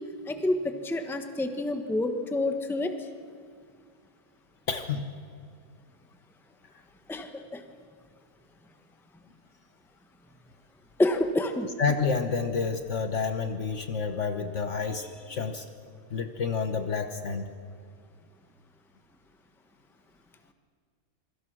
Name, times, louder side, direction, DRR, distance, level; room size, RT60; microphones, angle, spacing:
voice 1, 0.3-2.9 7.1-7.6 11.0-11.7, left 1 dB, ahead, 7 dB, 1.1 m, -28 dB
voice 2, 4.7-5.1 11.8-15.6 16.1-17.5, left 5 dB, 55° left, 7 dB, 1.3 m, -29 dB
26.5 x 23.5 x 6.2 m, 2.1 s
omnidirectional pair, 1.6 m